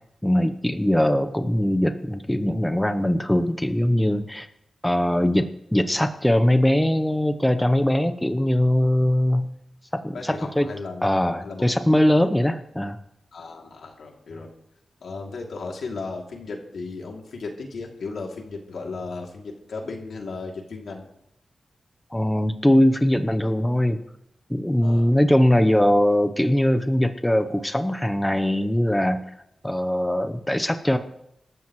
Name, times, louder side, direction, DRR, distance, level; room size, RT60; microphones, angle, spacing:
voice 1, 0.2-4.5 4.8-9.5 9.9-10.7 11.0-13.0 22.1-24.0 24.5-29.3 29.6-31.0, left 1 dB, 10° left, 8 dB, 0.9 m, -21 dB
voice 2, 10.1-11.7 13.3-14.5 15.0-21.1 24.8-25.1, left 3 dB, 85° left, 1 dB, 2.8 m, -35 dB
26.0 x 13.5 x 3.2 m, 0.77 s
wide cardioid pair, 120°, 0 cm